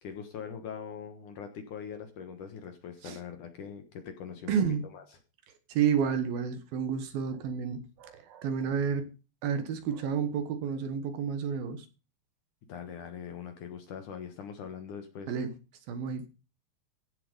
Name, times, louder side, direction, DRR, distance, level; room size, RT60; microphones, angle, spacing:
voice 1, 0.0-4.5 4.9-5.0 12.7-15.3, left 7 dB, 60° left, 2.4 m, -42 dB
voice 2, 4.5-4.9 5.7-9.1 9.4-11.9 15.3-15.5 15.9-16.3, right 7 dB, 65° right, 2.8 m, -30 dB
16.0 x 6.9 x 5.4 m
omnidirectional pair, 5.0 m